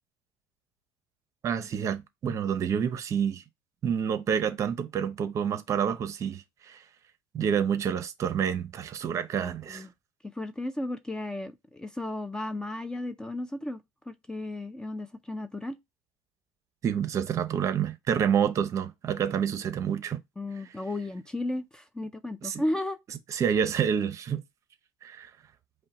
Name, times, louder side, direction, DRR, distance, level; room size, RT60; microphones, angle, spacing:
voice 1, 1.4-3.4 3.8-6.8 7.3-9.8 16.8-20.2 22.4-22.6 23.3-24.4 25.0-25.3, right 8 dB, 40° right, 0.7 m, -28 dB
voice 2, 9.4-9.9 10.3-15.8 20.4-23.0, left 1 dB, 10° left, 0.4 m, -34 dB
5.2 x 2.1 x 4.1 m
cardioid pair, 125°, 8 cm